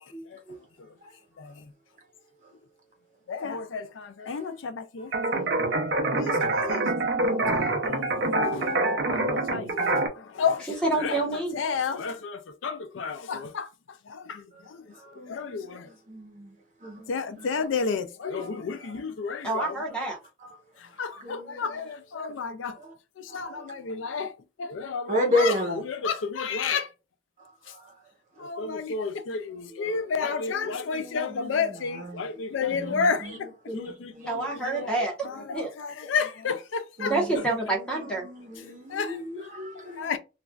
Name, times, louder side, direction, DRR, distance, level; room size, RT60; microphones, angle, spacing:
voice 1, 0.1-0.6 10.7-11.6 19.4-20.2 34.3-35.7 37.0-38.3, right 2 dB, 5° left, 1.1 m, -28 dB
voice 2, 3.3-5.1 6.1-6.8 7.2-8.8 9.1-9.8 10.1-10.7 11.0-11.2 11.5-13.7 14.1-14.8 15.3-15.9 17.1-19.8 21.0-22.8 23.2-24.3 24.6-25.6 25.8-26.9 28.4-34.4 34.6-34.9 35.2-37.1 38.9-40.2, left 5 dB, 90° left, 0.4 m, -31 dB
voice 3, 5.0-6.3 6.6-7.5 14.5-14.6 14.9-16.5 16.8-17.7 18.4-18.6 19.9-20.0 21.0-21.9 22.8-22.9 23.3-23.6 25.1-25.8 27.7-27.9 29.9-30.0 30.9-32.3 32.7-33.9 34.2-34.3 34.6-34.9 37.0-37.7 38.2-40.1, left 1 dB, 40° right, 0.9 m, -34 dB
sound 1, 5.1-10.1, right 2 dB, 75° right, 0.6 m, -25 dB
3.1 x 2.4 x 2.3 m
head